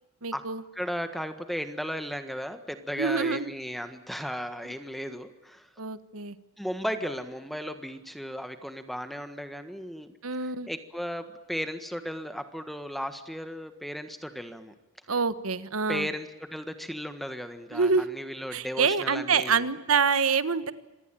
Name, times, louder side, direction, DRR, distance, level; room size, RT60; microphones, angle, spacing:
voice 1, 0.2-0.6 3.0-3.5 5.8-6.4 10.2-10.7 15.1-16.1 17.7-18.0 18.5-20.7, right 5 dB, 85° right, 13 dB, 1.4 m, -26 dB
voice 2, 0.7-5.7 6.6-10.1 10.7-14.7 15.9-19.7, equal, ahead, 9 dB, 1.5 m, -35 dB
26.5 x 19.0 x 9.0 m, 1.1 s
head